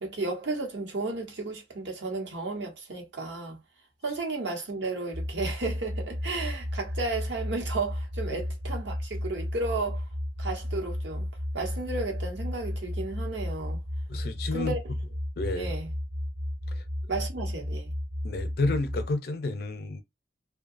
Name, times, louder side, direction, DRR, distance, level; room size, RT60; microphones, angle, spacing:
voice 1, 0.0-3.6 4.0-10.0 10.4-11.3 11.5-13.8 14.5-14.8 15.6-15.9 17.1-17.9, right 3 dB, 75° right, 0.9 m, -33 dB
sound 1, 5.1-19.1, left 1 dB, 30° right, 0.3 m, -33 dB
voice 2, 14.1-14.8 15.4-15.7 16.7-16.8 18.2-20.0, left 2 dB, 55° left, 0.4 m, -30 dB
2.7 x 2.2 x 2.4 m
head